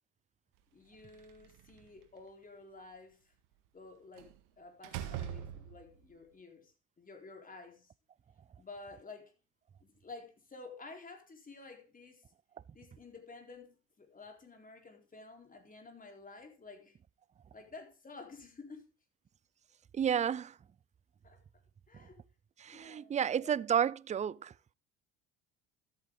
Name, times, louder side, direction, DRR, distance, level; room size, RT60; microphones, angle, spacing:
voice 1, 0.7-3.2 3.7-7.9 8.6-9.3 9.8-12.2 12.7-17.0 17.5-18.9 21.2-21.4 21.9-22.2 22.7-23.6, left 3 dB, 25° left, 4.2 m, -52 dB
Slam, 1.0-2.0 4.2-4.4 4.8-6.1, right 10 dB, 70° right, 1.8 m, -42 dB
voice 2, 19.9-20.6 21.9-22.1 22.6-24.7, right 8 dB, 20° right, 0.4 m, -32 dB
13.0 x 8.4 x 3.9 m
hypercardioid pair, 75°, 33 cm